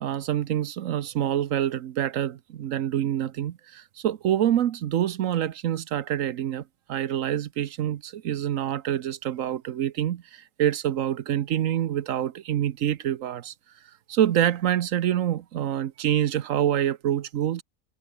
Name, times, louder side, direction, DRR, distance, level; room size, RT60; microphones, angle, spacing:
voice 1, 0.0-6.6 6.9-13.5 14.1-17.6, right 11 dB, 75° right, 1.1 m, -26 dB
omnidirectional pair, 1.4 m